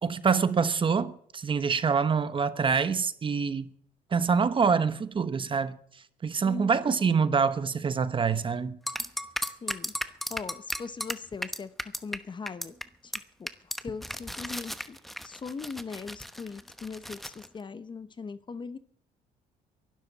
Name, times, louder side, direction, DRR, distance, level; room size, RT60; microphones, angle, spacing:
voice 1, 0.0-3.7 4.1-5.8 6.2-8.8, right 5 dB, 30° right, 1.0 m, -26 dB
voice 2, 6.4-6.8 9.6-12.7 13.0-13.1 13.4-15.0 15.2-18.8, left 5 dB, 30° left, 0.9 m, -40 dB
sound 1, 8.9-12.2 12.5-12.8 13.1-13.2 13.5-17.5, equal, ahead, 1.0 m, -35 dB
23.0 x 12.5 x 4.1 m
cardioid pair, 110°, 17 cm